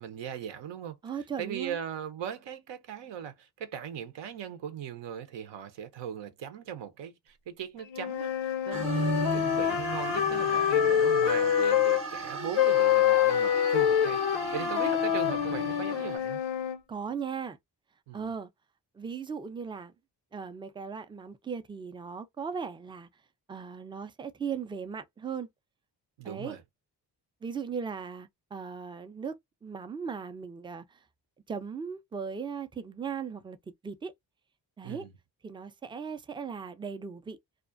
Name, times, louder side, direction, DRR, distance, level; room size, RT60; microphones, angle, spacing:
voice 1, 0.0-1.0 1.4-14.2 14.5-16.4 18.1-18.3 26.2-26.6 34.8-35.1, right 8 dB, 80° right, 0.7 m, -39 dB
voice 2, 1.0-1.8 8.8-8.9 14.5-14.7 16.9-17.6 18.1-18.5 18.9-19.9 20.3-23.1 23.5-25.5 26.2-26.6 27.4-31.0 31.5-33.6 33.8-34.1 34.8-35.1 35.4-37.4, right 6 dB, 15° right, 0.3 m, -38 dB
sound 1, 7.9-12.0 12.6-16.8, left 10 dB, 85° left, 0.5 m, -26 dB
sound 2, 8.7-16.2, right 3 dB, 30° right, 0.7 m, -36 dB
2.4 x 2.1 x 2.4 m
cardioid pair, 75°, 43 cm